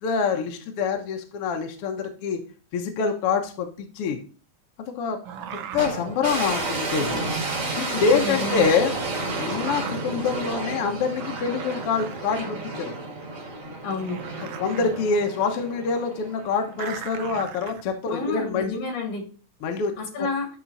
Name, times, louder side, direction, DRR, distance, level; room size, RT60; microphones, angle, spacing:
voice 1, 0.0-2.4 2.7-4.2 4.8-5.2 5.5-7.2 7.8-8.9 9.4-12.9 14.6-18.8 19.6-19.9, left 5 dB, 60° left, 4 dB, 1.8 m, -26 dB
sound 1, 5.2-6.0 6.5-7.6 8.6-10.4 10.9-11.0 11.2-12.9 13.6-13.7 13.9-15.1 16.7-18.4 19.6-20.0, right 8 dB, 70° right, 1.4 m, -39 dB
sound 2, 5.8-17.0, right 2 dB, 30° right, 1.9 m, -31 dB
voice 2, 8.0-8.7 13.8-14.2 18.1-19.3 20.0-20.5, left 3 dB, 80° left, 2 dB, 4.0 m, -30 dB
11.5 x 3.8 x 4.1 m, 0.38 s
omnidirectional pair, 3.4 m